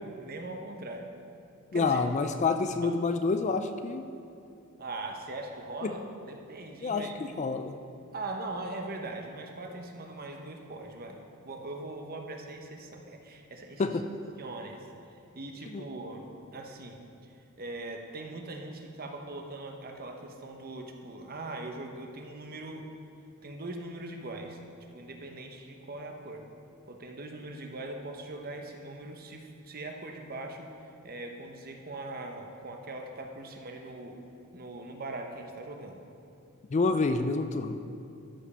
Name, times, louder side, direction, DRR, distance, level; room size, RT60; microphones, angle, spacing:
voice 1, 0.2-1.1 1.7-2.0 2.8-2.9 4.8-7.1 8.1-11.2 11.4-14.0 14.4-22.9 23.4-24.6 24.9-26.5 26.9-30.7 31.0-34.2 34.5-36.0, right 2 dB, 45° right, 3 dB, 0.9 m, -41 dB
voice 2, 1.7-4.1 5.8-5.9 6.8-7.0 7.4-7.8 13.8-14.0 15.7-15.8 36.7-37.8, left 4 dB, 35° left, 8 dB, 0.4 m, -28 dB
13.0 x 5.2 x 5.5 m, 2.5 s
head